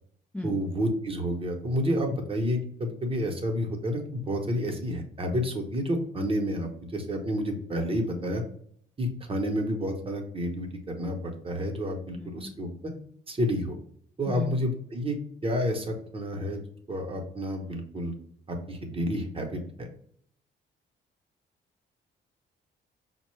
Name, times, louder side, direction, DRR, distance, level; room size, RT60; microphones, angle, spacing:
voice 1, 0.4-8.4 9.0-12.9 13.3-13.8 14.2-15.2 15.4-16.6 16.9-18.1 18.5-19.9, equal, 30° right, 2 dB, 0.8 m, -30 dB
voice 2, 12.1-12.5 14.3-14.6, left 1 dB, 5° left, 1 dB, 0.4 m, -35 dB
5.1 x 2.2 x 3.1 m, 0.63 s
cardioid pair, 90°, 20 cm